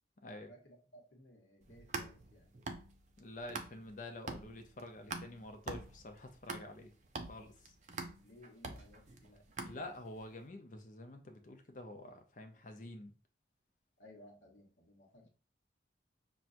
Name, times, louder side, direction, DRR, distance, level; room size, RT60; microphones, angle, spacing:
voice 1, 0.3-2.6 8.2-9.4 14.0-15.3, equal, 85° left, 1.0 m, -59 dB
sound 1, 1.6-4.0 4.3-10.2, right 3 dB, 40° right, 0.5 m, -45 dB
voice 2, 3.2-6.9 7.2-7.5 9.6-13.1, left 1 dB, 45° left, 0.5 m, -48 dB
5.8 x 2.3 x 2.5 m
head